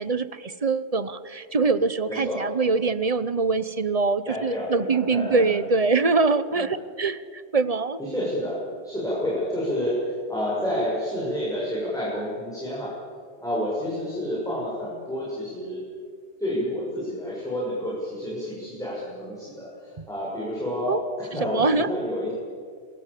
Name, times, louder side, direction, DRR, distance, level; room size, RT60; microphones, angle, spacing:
voice 1, 0.0-8.0 20.0-20.1 20.9-21.0 21.5-21.9, right 4 dB, 35° right, 14 dB, 0.9 m, -24 dB
voice 2, 2.1-2.4 4.3-5.6 6.6-6.7 8.0-8.6 8.8-12.9 13.4-15.8 16.4-22.3, equal, 5° left, -7 dB, 6.9 m, -29 dB
28.5 x 20.0 x 8.5 m, 2.2 s
omnidirectional pair, 1.2 m